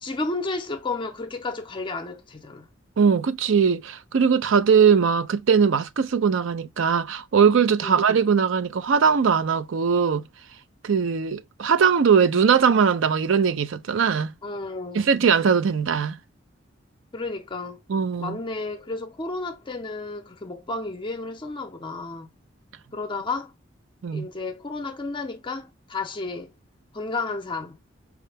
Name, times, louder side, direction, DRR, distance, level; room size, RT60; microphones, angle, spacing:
voice 1, 0.0-2.7 7.8-8.0 14.4-15.0 17.1-17.8 18.2-22.3 22.9-23.5 24.1-26.5 26.9-27.8, left 3 dB, 25° left, 0.6 m, -32 dB
voice 2, 3.0-10.2 10.8-14.3 14.9-16.2 17.9-18.4 24.0-24.3, right 6 dB, 70° right, 0.5 m, -20 dB
4.8 x 2.1 x 3.3 m
head